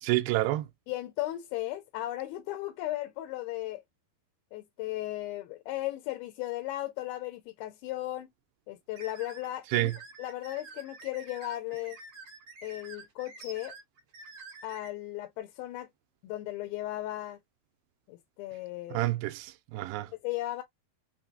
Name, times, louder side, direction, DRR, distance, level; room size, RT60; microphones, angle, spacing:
voice 1, 0.0-0.7 9.7-10.0 18.9-20.1, right 17 dB, 80° right, 2.3 m, -28 dB
voice 2, 0.9-3.8 4.5-8.3 8.7-9.9 10.2-12.0 12.6-13.8 14.6-15.9 16.2-17.4 18.1-19.1 20.2-20.6, left 16 dB, 85° left, 2.4 m, -36 dB
sound 1, 9.0-14.9, right 3 dB, 60° right, 1.3 m, -48 dB
6.0 x 2.3 x 2.6 m
omnidirectional pair, 4.5 m